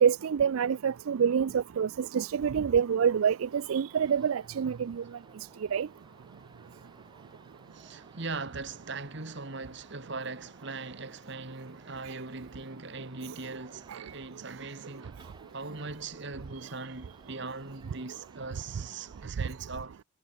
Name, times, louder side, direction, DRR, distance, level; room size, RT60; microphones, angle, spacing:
voice 1, 0.0-5.0 5.7-5.9 13.9-14.0, right 7 dB, 85° right, 0.4 m, -26 dB
sound 1, 3.2-19.3, right 2 dB, 20° right, 4.0 m, -58 dB
voice 2, 7.7-15.2 15.5-20.0, right 3 dB, 60° right, 2.2 m, -40 dB
head